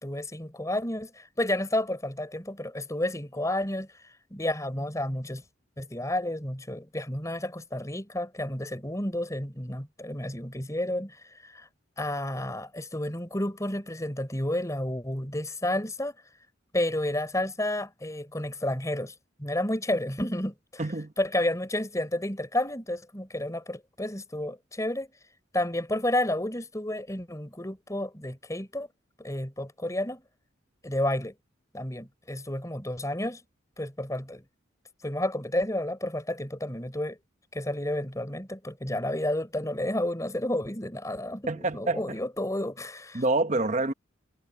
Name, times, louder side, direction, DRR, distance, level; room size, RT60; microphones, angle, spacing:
voice 1, 0.0-3.9 4.3-5.4 5.8-11.7 12.0-16.1 16.7-19.1 19.4-20.9 21.2-25.1 25.5-28.9 29.2-30.2 30.8-31.3 31.7-33.4 33.8-34.4 35.0-37.2 37.5-43.2, left 1 dB, 15° left, 3.8 m, -31 dB
voice 2, 20.8-21.1 41.5-42.2 43.1-43.9, right 2 dB, 40° right, 1.1 m, -27 dB
head